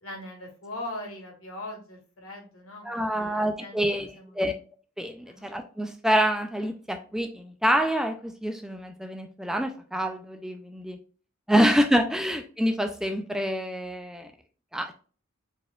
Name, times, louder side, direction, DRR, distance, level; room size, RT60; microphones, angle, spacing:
voice 1, 0.0-4.4 5.3-5.5 12.1-12.2, left 1 dB, 75° left, 0 dB, 2.0 m, -41 dB
voice 2, 2.8-4.1 4.3-4.5 5.0-11.0 11.5-14.3 14.7-14.9, equal, 5° right, 6 dB, 0.4 m, -26 dB
4.6 x 4.2 x 2.3 m, 0.40 s
head